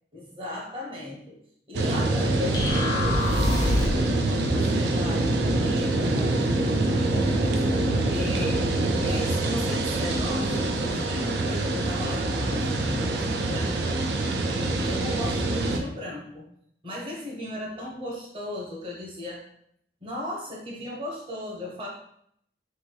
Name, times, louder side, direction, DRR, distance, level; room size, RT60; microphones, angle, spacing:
voice 1, 0.1-1.4 1.7-3.0 3.3-8.6 9.0-14.0 14.7-16.5 16.8-19.4 20.0-21.9, left 1 dB, 30° right, -3 dB, 0.8 m, -37 dB
sound 1, 1.7-15.8, right 2 dB, 75° right, 0.4 m, -25 dB
sound 2, 2.5-4.1, left 2 dB, 20° left, 0.4 m, -25 dB
3.2 x 3.1 x 2.2 m, 0.71 s
head